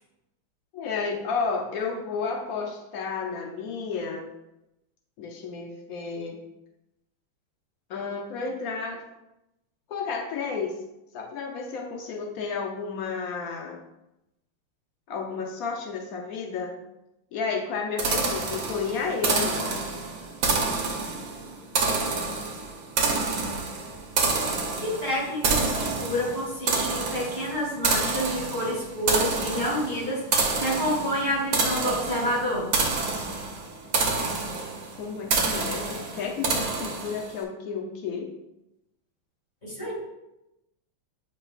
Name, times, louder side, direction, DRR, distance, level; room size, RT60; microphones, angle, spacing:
voice 1, 0.7-4.3 5.2-6.4 7.9-9.0 9.9-10.7 11.1-13.8 15.1-16.7 17.3-19.8 35.0-38.3, left 5 dB, 80° left, 1 dB, 0.8 m, -32 dB
sound 1, 18.0-37.4, right 4 dB, 55° right, 1.0 m, -28 dB
voice 2, 24.8-32.7 39.6-39.9, equal, 20° left, -6 dB, 2.4 m, -28 dB
8.4 x 4.9 x 2.4 m, 0.90 s
omnidirectional pair, 2.3 m